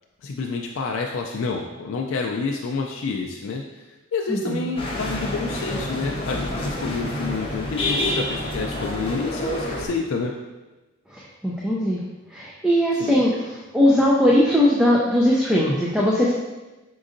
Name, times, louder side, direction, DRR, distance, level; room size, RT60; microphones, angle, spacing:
voice 1, 0.2-3.9 4.1-10.3 12.9-13.2, left 4 dB, 75° left, 1 dB, 0.4 m, -28 dB
voice 2, 4.3-4.6 11.1-12.0 12.3-13.3 13.7-16.3, left 1 dB, 5° right, -5 dB, 0.4 m, -19 dB
sound 1, 4.8-9.9, left 1 dB, 25° left, 0.7 m, -28 dB
5.2 x 3.8 x 2.5 m, 1.1 s
head